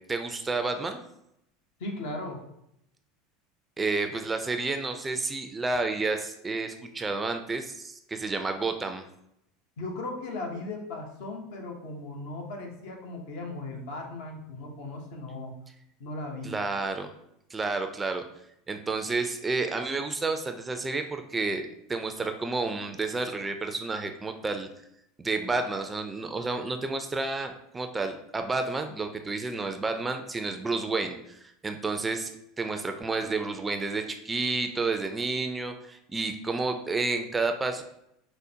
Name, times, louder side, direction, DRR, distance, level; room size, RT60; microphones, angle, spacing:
voice 1, 0.1-1.0 3.8-9.1 16.4-17.1 17.5-18.2 18.7-24.7 25.2-32.3 32.6-37.8, right 3 dB, 20° right, 7 dB, 0.4 m, -30 dB
voice 2, 1.8-2.4 9.8-15.5 16.0-16.6, left 2 dB, 70° left, 2 dB, 0.8 m, -37 dB
4.9 x 2.0 x 2.7 m, 0.79 s
hypercardioid pair, 85°, 0 cm